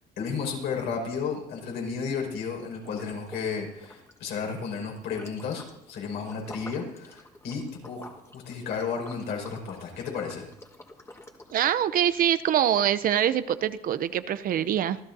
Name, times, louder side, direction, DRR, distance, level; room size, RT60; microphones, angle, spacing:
voice 1, 0.2-10.5, left 5 dB, 75° left, 0 dB, 5.6 m, -33 dB
Liquid, 2.8-3.5 3.8-11.7, left 2 dB, 15° left, 1.8 m, -48 dB
voice 2, 11.5-15.0, right 10 dB, 55° right, 13 dB, 0.7 m, -24 dB
25.5 x 15.0 x 2.8 m, 0.81 s
cardioid pair, 110°, 17 cm